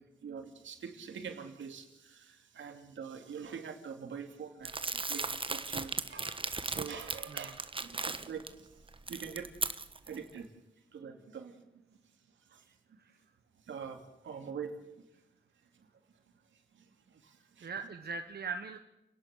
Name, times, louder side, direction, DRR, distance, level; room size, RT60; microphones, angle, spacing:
voice 1, 0.0-8.7 9.1-9.5 10.1-10.5 10.9-11.8 12.5-12.6 12.9-13.0 13.7-15.0 16.7-17.7, right 6 dB, 80° right, 5 dB, 2.8 m, -45 dB
Crumpling crinkling, 4.6-8.5 8.9-10.2, right 3 dB, 25° right, 1.3 m, -37 dB
voice 2, 12.6-13.2 17.6-18.8, right 4 dB, 55° right, 7 dB, 1.3 m, -41 dB
29.0 x 11.0 x 8.4 m, 0.93 s
cardioid pair, 70°, 19 cm